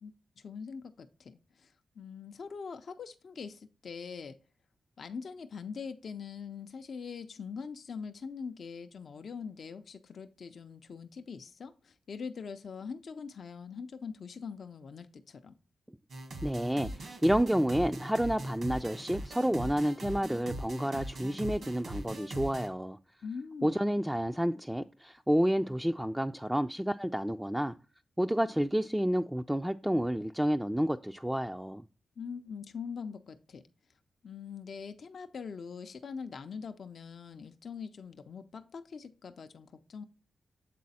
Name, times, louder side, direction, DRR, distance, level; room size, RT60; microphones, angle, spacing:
voice 1, 0.0-4.4 5.0-15.5 23.2-23.9 32.2-33.6 34.2-40.0, left 5 dB, 70° left, 0.5 m, -43 dB
sound 1, 16.1-22.7, right 1 dB, 75° right, 1.4 m, -40 dB
voice 2, 16.4-23.0 23.6-27.7 28.2-31.8, equal, 5° right, 0.3 m, -30 dB
7.5 x 3.9 x 4.1 m
cardioid pair, 50°, 0 cm